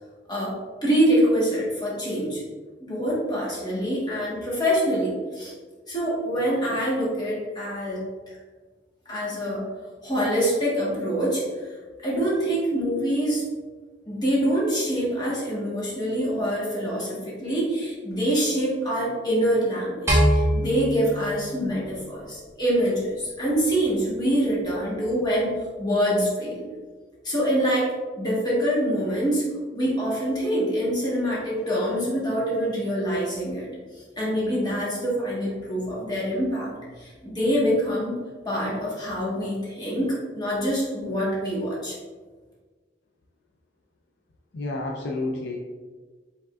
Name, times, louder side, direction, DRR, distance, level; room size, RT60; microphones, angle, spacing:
voice 1, 0.8-2.4 2.8-5.5 5.9-8.0 8.3-8.4 9.0-9.6 10.0-11.7 12.0-13.4 14.1-26.6 27.2-29.4 29.7-33.7 34.2-36.7 37.0-38.2 38.4-42.0, equal, 25° left, -7 dB, 1.3 m, -25 dB
sound 1, 20.1-22.5, equal, 15° right, 1.0 m, -23 dB
voice 2, 44.5-45.6, left 2 dB, 65° left, 0 dB, 0.5 m, -30 dB
4.9 x 3.5 x 2.4 m, 1.4 s
head